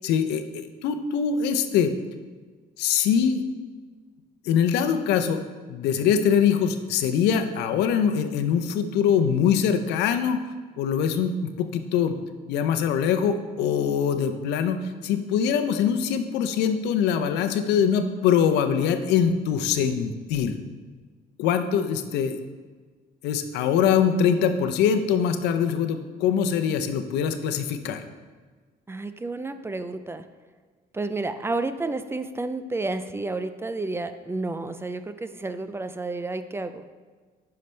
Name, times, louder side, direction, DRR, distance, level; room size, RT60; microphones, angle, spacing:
voice 1, 0.0-1.9 2.8-3.4 4.4-5.4 5.7-10.4 10.8-12.2 12.5-20.6 21.4-22.4 23.2-28.0, left 7 dB, 85° left, 8 dB, 0.6 m, -23 dB
voice 2, 28.9-30.3 30.9-36.8, right 2 dB, 15° right, 10 dB, 0.4 m, -31 dB
10.5 x 5.8 x 3.3 m, 1.4 s
cardioid pair, 110°, 17 cm